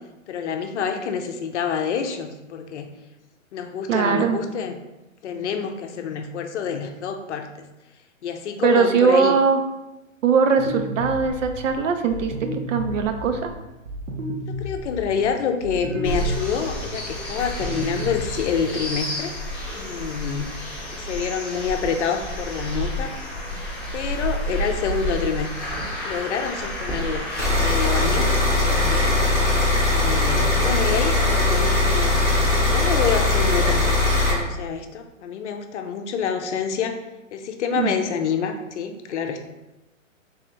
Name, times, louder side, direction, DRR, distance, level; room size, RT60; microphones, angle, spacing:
voice 1, 0.3-2.9 3.5-4.8 5.2-7.5 8.2-9.4 14.5-19.3 19.7-20.6 20.9-23.2 23.9-25.5 26.0-27.3 27.6-28.3 28.6-29.2 29.9-32.2 32.7-37.0 37.3-39.5, left 6 dB, 60° left, 6 dB, 0.6 m, -27 dB
voice 2, 3.9-4.4 8.6-9.6 10.2-13.5 37.8-37.9, right 5 dB, 70° right, 6 dB, 0.6 m, -20 dB
sound 1, 10.6-18.9, equal, 85° right, 1.0 m, -33 dB
sound 2, 16.0-27.4, equal, 10° left, 0.8 m, -30 dB
sound 3, 27.4-34.3, left 2 dB, 15° right, 0.3 m, -20 dB
3.5 x 2.9 x 3.4 m, 0.99 s
hypercardioid pair, 145°, 40 cm